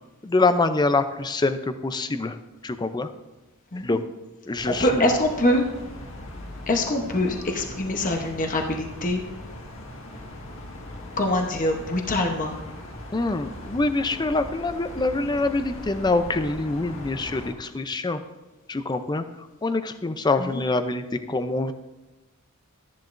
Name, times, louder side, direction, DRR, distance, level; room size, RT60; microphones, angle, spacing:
voice 1, 0.2-2.4 2.6-3.1 3.7-4.0 4.5-5.1 13.1-18.2 18.7-19.2 19.6-21.7, left 3 dB, 20° left, 10 dB, 0.5 m, -25 dB
sound 1, 4.5-17.5, left 1 dB, 65° left, 1.7 m, -40 dB
voice 2, 4.6-5.6 6.7-9.2 11.2-12.5 20.4-20.6, left 1 dB, 35° left, 3 dB, 0.9 m, -24 dB
13.0 x 10.5 x 2.5 m, 1.1 s
head